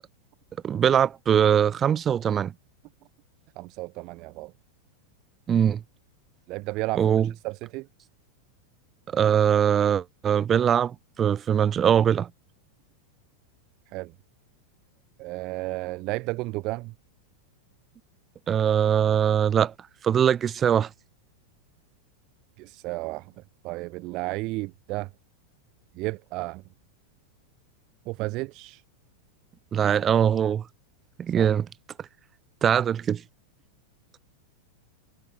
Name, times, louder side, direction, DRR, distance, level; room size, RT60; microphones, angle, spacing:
voice 1, 0.6-2.5 5.5-5.8 7.0-7.3 9.1-12.3 18.5-19.7 20.0-20.9 29.7-30.6 31.2-31.7 32.6-33.2, right 8 dB, 25° right, 5.4 m, -22 dB
voice 2, 3.6-4.5 6.5-7.1 7.4-7.9 13.9-14.1 15.2-16.9 22.6-23.3 23.6-25.1 25.9-26.6 28.1-28.8 31.4-31.5, right 22 dB, 40° right, 4.6 m, -32 dB
figure-of-eight pair, 90°, 0 cm